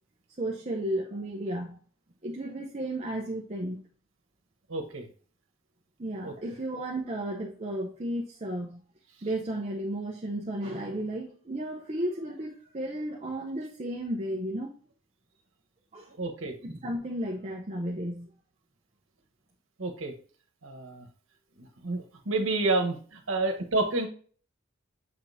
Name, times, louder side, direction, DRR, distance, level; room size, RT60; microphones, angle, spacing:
voice 1, 0.4-1.8 2.2-3.8 6.0-8.8 9.2-14.7 15.9-16.1 16.6-18.3, right 1 dB, 35° right, 0 dB, 0.7 m, -33 dB
voice 2, 4.7-5.0 6.2-6.3 16.2-16.5 19.8-20.1 20.6-21.1 21.8-24.1, right 2 dB, 80° right, 4 dB, 1.1 m, -29 dB
6.9 x 5.1 x 2.7 m, 0.43 s
head